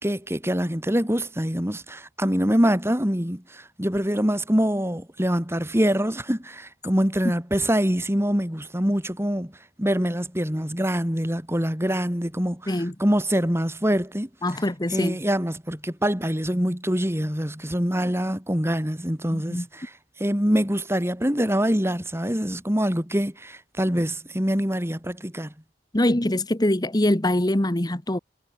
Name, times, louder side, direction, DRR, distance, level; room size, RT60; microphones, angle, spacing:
voice 1, 0.0-9.5 9.8-12.7 13.0-14.3 14.9-19.9 20.2-25.5, equal, 15° right, 4.1 m, -24 dB
voice 2, 14.4-15.2 19.3-19.7 25.9-28.2, left 1 dB, 20° left, 1.3 m, -23 dB
head